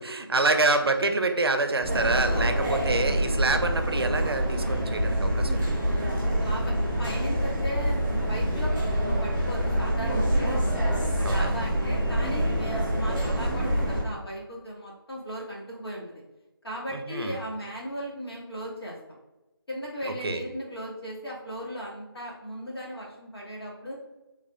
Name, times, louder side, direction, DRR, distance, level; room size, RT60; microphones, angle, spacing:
voice 1, 0.0-6.0 11.2-11.6 16.9-17.4 20.1-20.4, right 3 dB, 80° right, 7 dB, 0.5 m, -27 dB
sound 1, 1.8-14.0, equal, 5° left, 0.7 m, -26 dB
voice 2, 6.4-10.6 11.1-16.2 16.6-19.2 19.7-23.9, equal, 85° left, -4 dB, 1.4 m, -37 dB
3.4 x 2.1 x 3.3 m, 1.0 s
figure-of-eight pair, 165°, 13 cm